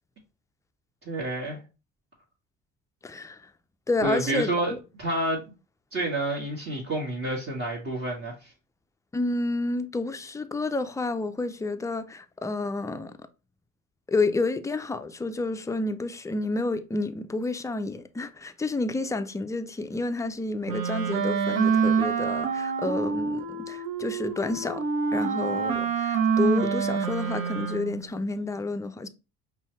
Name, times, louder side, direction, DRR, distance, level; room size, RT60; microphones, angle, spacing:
voice 1, 1.0-1.6 4.0-4.7 5.0-5.4 5.9-8.5, right 2 dB, 35° right, 1.5 m, -29 dB
voice 2, 3.0-3.4 3.9-4.5 9.1-13.1 14.1-24.9 25.1-29.1, left 3 dB, 10° left, 0.3 m, -30 dB
Wind instrument woodwind instrument, 20.7-28.1, right 6 dB, 60° right, 0.8 m, -26 dB
5.3 x 2.3 x 3.0 m
hypercardioid pair, 60°, 39 cm